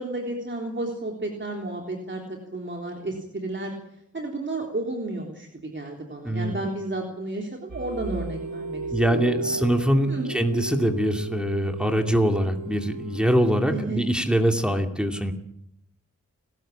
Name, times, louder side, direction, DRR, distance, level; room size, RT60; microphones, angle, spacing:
voice 1, 0.0-3.7 4.1-9.6 10.1-10.4 13.7-14.0, right 2 dB, 40° right, 1 dB, 3.7 m, -32 dB
voice 2, 6.2-6.6 8.9-15.3, equal, 5° right, 4 dB, 2.5 m, -23 dB
sound 1, 7.7-13.7, right 3 dB, 80° right, 1.7 m, -35 dB
30.0 x 14.0 x 8.7 m, 0.76 s
wide cardioid pair, 100°, 30 cm